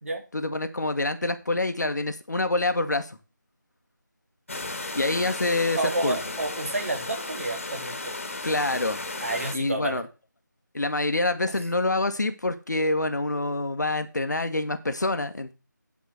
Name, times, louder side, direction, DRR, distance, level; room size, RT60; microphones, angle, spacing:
voice 1, 0.3-3.2 4.9-6.2 8.4-9.0 9.5-10.1 10.7-15.5, left 2 dB, 60° left, 9 dB, 1.5 m, -26 dB
sound 1, 4.5-9.5, left 2 dB, 40° left, 2.0 m, -34 dB
voice 2, 5.8-8.1 9.2-10.0, right 2 dB, 45° right, 5 dB, 2.3 m, -30 dB
9.8 x 5.5 x 6.5 m, 0.31 s
figure-of-eight pair, 165°, 11 cm